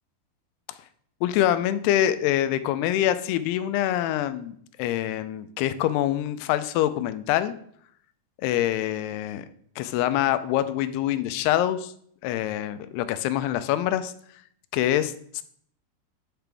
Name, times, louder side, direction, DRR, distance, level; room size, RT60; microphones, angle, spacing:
voice 1, 1.2-7.6 8.4-9.5 9.8-11.9 12.2-14.1 14.7-15.4, left 12 dB, 90° left, 12 dB, 2.6 m, -25 dB
10.5 x 5.8 x 3.4 m, 0.64 s
omnidirectional pair, 4.5 m